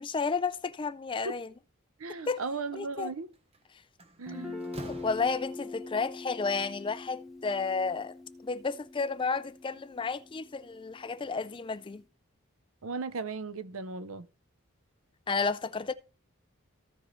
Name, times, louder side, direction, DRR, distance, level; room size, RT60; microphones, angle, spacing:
voice 1, 0.0-1.5 2.3-2.4 2.7-3.1 4.9-8.1 8.4-12.0 15.3-15.9, left 4 dB, 25° left, 0.3 m, -32 dB
voice 2, 2.0-3.3 4.2-4.8 12.8-14.3, right 4 dB, 70° right, 0.6 m, -37 dB
Slam, 3.3-3.6 4.0-5.9, right 1 dB, 30° right, 1.0 m, -46 dB
Guitar, 4.3-11.9, left 3 dB, ahead, 1.2 m, -44 dB
15.5 x 5.4 x 3.1 m
head